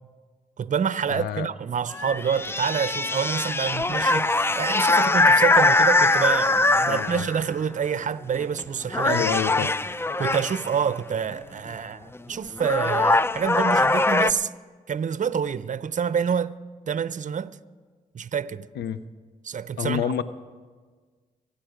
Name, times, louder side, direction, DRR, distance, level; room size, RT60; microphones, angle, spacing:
voice 1, 0.6-9.3 9.6-9.7 10.2-14.5 14.9-16.6 16.9-17.6 18.1-18.7 19.4-20.1, right 7 dB, 50° right, 0.6 m, -27 dB
voice 2, 1.1-1.5 6.9-7.3 9.1-9.7 18.8-19.0 19.8-20.2, left 9 dB, 85° left, 0.6 m, -28 dB
sound 1, 1.9-7.5 8.3-8.6 8.9-10.8 12.2-12.3 12.6-14.3, left 2 dB, 15° left, 0.4 m, -22 dB
24.5 x 8.4 x 5.0 m
supercardioid pair, 45°, 17 cm